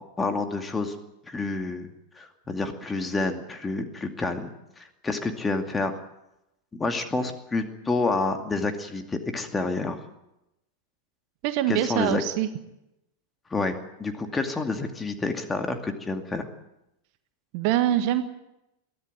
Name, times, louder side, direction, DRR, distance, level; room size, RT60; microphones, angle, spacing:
voice 1, 0.2-0.9 1.3-1.9 2.2-6.0 6.7-10.0 11.7-12.2 13.5-16.5, left 3 dB, 15° left, 6 dB, 2.4 m, -29 dB
voice 2, 11.4-12.5 17.5-18.2, right 13 dB, 45° right, 10 dB, 1.6 m, -24 dB
22.0 x 15.0 x 9.5 m, 0.89 s
figure-of-eight pair, 90°, 0 cm